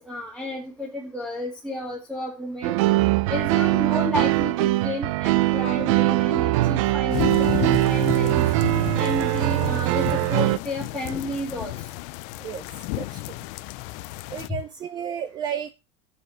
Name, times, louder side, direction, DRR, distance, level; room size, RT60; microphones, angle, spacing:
voice 1, 0.1-2.7 3.3-8.4 9.0-11.7, equal, 5° right, -2 dB, 2.1 m, -31 dB
sound 1, 2.6-10.6, right 17 dB, 75° right, 0.5 m, -22 dB
sound 2, 7.1-14.5, left 20 dB, 45° left, 0.4 m, -32 dB
voice 2, 14.3-15.7, right 8 dB, 25° right, 12 dB, 0.5 m, -32 dB
7.5 x 6.8 x 6.4 m, 0.27 s
cardioid pair, 175°, 16 cm